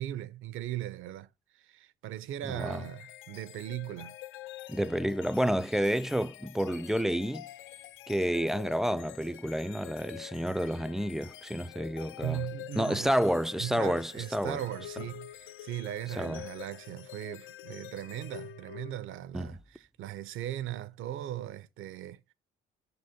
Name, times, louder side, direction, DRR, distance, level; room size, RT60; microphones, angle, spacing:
voice 1, 0.0-4.2 12.2-13.2 13.6-22.2, right 12 dB, 75° right, 0.6 m, -38 dB
voice 2, 2.5-2.8 4.7-7.5 8.1-12.4 12.8-14.6 16.2-16.4 19.3-19.6, equal, ahead, 0.3 m, -30 dB
sound 1, 2.6-19.2, left 14 dB, 75° left, 0.4 m, -47 dB
5.5 x 4.0 x 5.0 m
cardioid pair, 80°, 21 cm